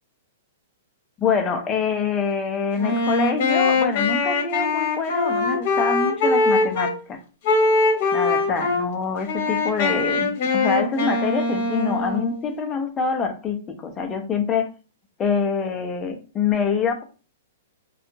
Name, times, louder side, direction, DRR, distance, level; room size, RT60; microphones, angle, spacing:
voice 1, 1.2-7.2 8.1-14.7 15.2-17.0, left 5 dB, 15° left, 4 dB, 0.5 m, -25 dB
Wind instrument woodwind instrument, 2.8-6.9 7.4-8.8 9.2-12.5, left 3 dB, 45° left, 1.0 m, -22 dB
2.7 x 2.3 x 2.6 m, 0.35 s
hypercardioid pair, 160°, 0 cm